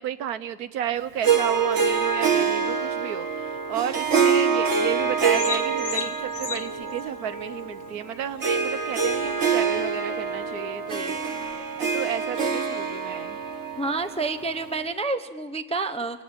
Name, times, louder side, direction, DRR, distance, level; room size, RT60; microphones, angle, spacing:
voice 1, 0.0-11.2 11.5-13.4, right 10 dB, 85° right, 13 dB, 1.4 m, -32 dB
Harp, 1.2-14.9, right 5 dB, 50° right, 1.8 m, -26 dB
sound 1, 5.0-11.6, left 5 dB, 55° left, 1.6 m, -39 dB
voice 2, 13.8-16.2, right 3 dB, 5° left, 10 dB, 0.5 m, -28 dB
25.0 x 18.5 x 8.8 m, 1.4 s
omnidirectional pair, 1.6 m